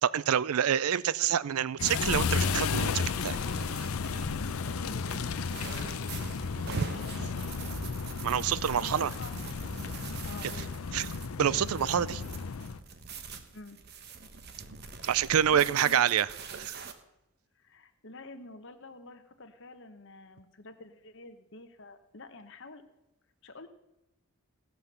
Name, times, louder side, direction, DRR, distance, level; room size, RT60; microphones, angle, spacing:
voice 1, 0.0-3.4 6.7-6.9 8.2-9.1 10.4-10.5 10.9-11.1 11.4-12.2 15.0-16.3 16.5-16.8, right 9 dB, 90° right, 19 dB, 0.4 m, -27 dB
sound 1, 1.8-12.8, left 5 dB, 80° left, 0.6 m, -33 dB
sound 2, 3.2-16.9, right 4 dB, 50° right, 1.0 m, -44 dB
voice 2, 4.5-7.9 8.7-9.4 10.2-10.7 13.3-13.8 15.0-15.2 15.5-16.1 17.6-22.8 23.4-23.7, left 2 dB, 55° left, 8 dB, 1.1 m, -48 dB
17.0 x 5.8 x 6.8 m, 0.91 s
head